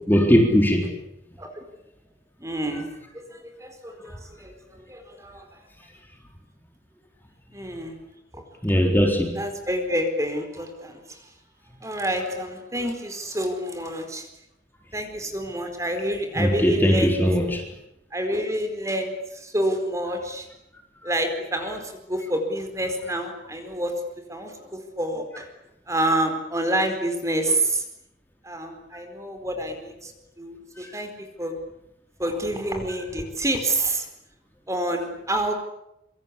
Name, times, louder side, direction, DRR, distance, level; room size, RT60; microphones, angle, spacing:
voice 1, 0.1-0.9 8.6-9.3 16.4-17.6 21.0-21.1, equal, 10° left, 2 dB, 3.9 m, -19 dB
voice 2, 2.4-2.9 3.3-5.5 7.5-7.9 8.3-8.4 9.3-11.3 11.8-14.3 14.9-17.2 18.1-20.5 21.0-23.9 24.3-25.5 25.9-27.8 28.4-31.6 32.2-34.1 34.7-35.5, right 1 dB, 15° right, 5 dB, 4.5 m, -28 dB
26.5 x 25.5 x 8.5 m, 0.82 s
head